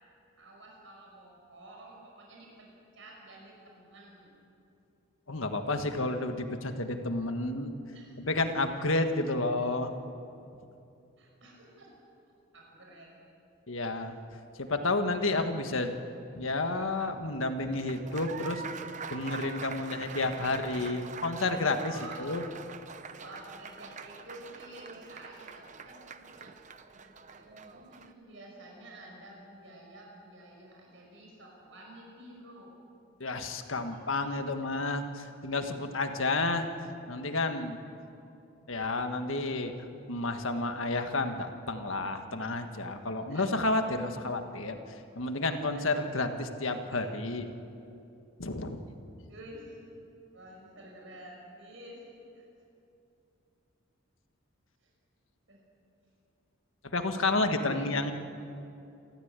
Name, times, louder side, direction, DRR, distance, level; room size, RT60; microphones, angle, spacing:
voice 1, 0.4-2.7 2.9-4.4 7.9-8.2 11.2-11.9 12.5-13.2 13.9-14.0 21.8-22.4 23.1-26.0 26.4-26.5 26.9-32.7 33.8-34.0 34.6-34.7 37.9-38.0 43.3-43.5 45.7-45.9 46.9-47.1 49.3-49.8 50.3-52.0 52.3-52.4 54.8-54.9 55.5-55.6 57.5-57.9, right 1 dB, 65° right, -2 dB, 5.8 m, -50 dB
voice 2, 5.3-7.7 8.2-9.9 13.7-14.2 14.6-15.9 16.3-18.6 19.1-22.4 33.2-36.7 37.1-37.8 38.7-39.7 40.1-47.4 48.4-48.8 56.9-58.1, left 2 dB, 75° left, 6 dB, 1.6 m, -31 dB
Applause, 17.7-28.1, right 5 dB, 35° right, 0.8 m, -44 dB
28.5 x 14.0 x 8.3 m, 2.7 s
head